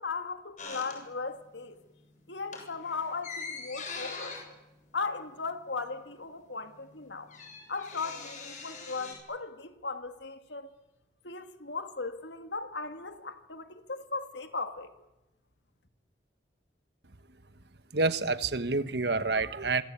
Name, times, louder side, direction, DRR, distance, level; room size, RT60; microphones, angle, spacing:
voice 1, 0.0-1.8 2.3-4.4 4.9-7.3 7.7-10.7 11.2-14.9, left 4 dB, 75° left, 2.2 m, -37 dB
sound 1, 0.6-1.5 1.8-2.0 2.4-5.9 6.1-6.2 6.4-9.1, left 4 dB, 40° left, 7.4 m, -43 dB
voice 2, 17.9-19.8, right 3 dB, 65° right, 1.3 m, -28 dB
27.0 x 25.0 x 8.7 m
head